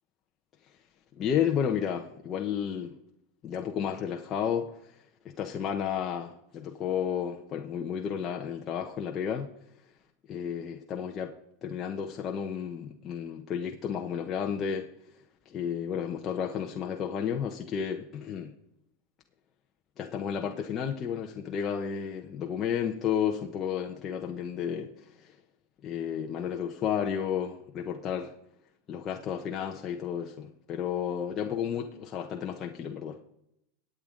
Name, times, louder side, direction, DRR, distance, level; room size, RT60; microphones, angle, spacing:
voice 1, 1.2-2.9 3.4-4.9 5.4-9.5 10.3-11.3 11.6-14.9 15.5-18.5 20.0-25.3 25.8-28.3 28.9-33.2, left 8 dB, 25° left, 2 dB, 0.9 m, -32 dB
23.5 x 8.9 x 3.9 m, 0.80 s
supercardioid pair, 165°, 0 cm